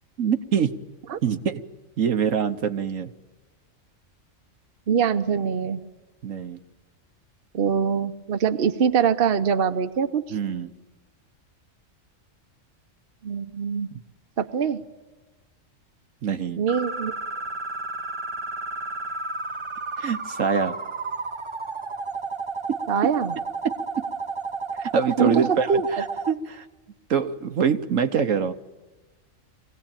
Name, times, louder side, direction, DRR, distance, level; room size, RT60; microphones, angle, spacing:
voice 1, 0.2-0.7 1.2-1.6 2.0-3.1 6.2-6.6 10.3-10.7 16.2-16.6 20.0-20.8 22.7-22.8 23.6-23.7 24.8-26.7 27.1-28.5, right 7 dB, 75° right, 8 dB, 1.4 m, -24 dB
voice 2, 4.9-5.8 7.5-10.2 13.2-13.9 14.4-14.8 16.6-17.1 22.9-23.3 25.2-25.4 25.7-25.9, right 7 dB, 50° right, 9 dB, 1.1 m, -23 dB
sound 1, 16.7-26.3, right 3 dB, 25° right, 0.8 m, -32 dB
24.0 x 17.5 x 8.9 m, 1.2 s
omnidirectional pair, 1.4 m